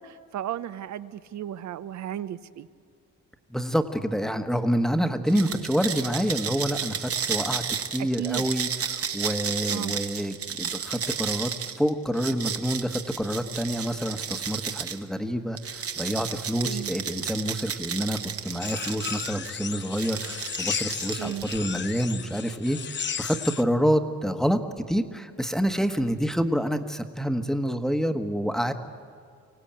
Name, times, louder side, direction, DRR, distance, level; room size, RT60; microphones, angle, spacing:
voice 1, 0.0-2.7 5.5-5.7 8.0-8.4 9.7-10.0 16.6-16.9 21.2-21.5, right 11 dB, 65° right, 15 dB, 0.8 m, -34 dB
voice 2, 3.5-7.6 7.9-28.7, equal, ahead, 8 dB, 1.3 m, -27 dB
sound 1, 5.3-15.0 15.6-19.5 19.9-21.8, right 7 dB, 50° right, 1.4 m, -33 dB
sound 2, 18.6-23.6, left 7 dB, 35° left, 0.8 m, -34 dB
24.0 x 16.5 x 8.9 m, 2.1 s
cardioid pair, 90°, 30 cm